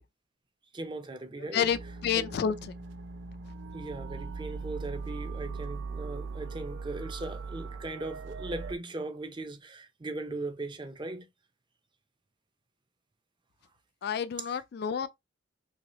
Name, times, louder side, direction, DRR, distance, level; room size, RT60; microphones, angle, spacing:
voice 1, 0.7-1.7 2.2-2.3 3.7-11.3, right 2 dB, 25° right, 0.5 m, -38 dB
voice 2, 1.5-2.6 14.0-15.1, left 7 dB, 60° left, 0.3 m, -29 dB
sound 1, 1.7-8.7, right 4 dB, 85° right, 0.4 m, -40 dB
3.0 x 2.8 x 3.0 m
head